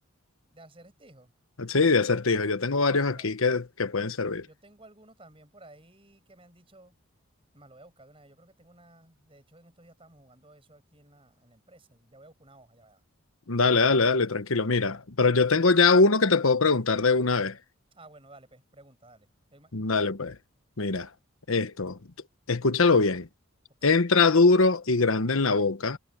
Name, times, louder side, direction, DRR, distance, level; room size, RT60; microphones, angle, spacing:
voice 1, 0.5-1.3 3.1-3.3 4.4-7.0 7.5-13.0 17.9-19.7 20.8-21.1 23.8-23.9, right 2 dB, 25° right, 6.3 m, -55 dB
voice 2, 1.6-4.5 13.5-17.6 19.7-20.3 20.8-21.1 21.5-22.0 22.5-23.3 23.8-26.0, left 4 dB, 75° left, 1.1 m, -22 dB
head